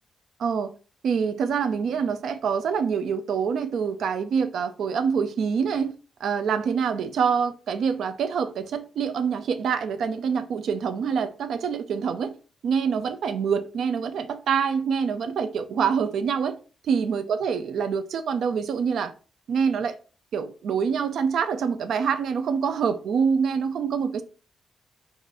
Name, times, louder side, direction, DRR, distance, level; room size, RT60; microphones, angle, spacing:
voice 1, 0.4-0.7 1.0-5.9 6.2-12.3 12.6-16.6 16.8-19.1 19.5-20.0 20.3-24.2, right 6 dB, 75° right, 0.4 m, -25 dB
4.6 x 2.5 x 4.0 m
wide cardioid pair, 140°, 0 cm